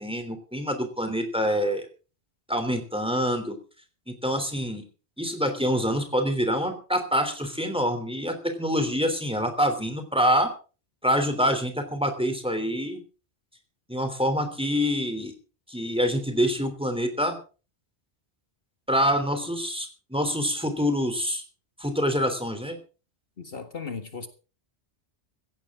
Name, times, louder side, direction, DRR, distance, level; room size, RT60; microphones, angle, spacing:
voice 1, 0.0-1.9 2.5-3.6 4.1-4.8 5.2-10.5 11.0-13.0 13.9-15.3 15.7-17.4 18.9-21.4 21.8-22.8, equal, 5° right, 7 dB, 3.2 m, -26 dB
voice 2, 23.4-24.3, left 5 dB, 55° left, 7 dB, 1.9 m, -36 dB
16.5 x 16.5 x 3.7 m, 0.36 s
omnidirectional pair, 1.1 m